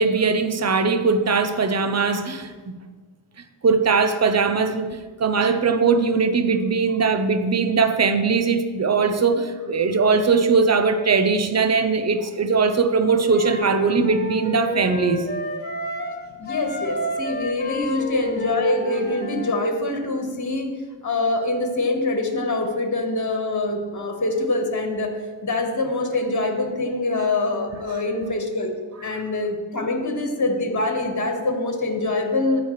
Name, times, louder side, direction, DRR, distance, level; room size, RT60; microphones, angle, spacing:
voice 1, 0.0-2.5 3.6-15.3, right 4 dB, 30° right, 9 dB, 0.9 m, -20 dB
Wind instrument woodwind instrument, 13.2-16.2 16.5-19.6, equal, 20° left, 1.7 m, -30 dB
voice 2, 16.4-20.7 21.0-25.1 25.4-28.7 29.0-32.6, left 2 dB, 35° left, 3 dB, 1.7 m, -24 dB
15.0 x 5.0 x 3.3 m, 1.4 s
supercardioid pair, 40°, 50 cm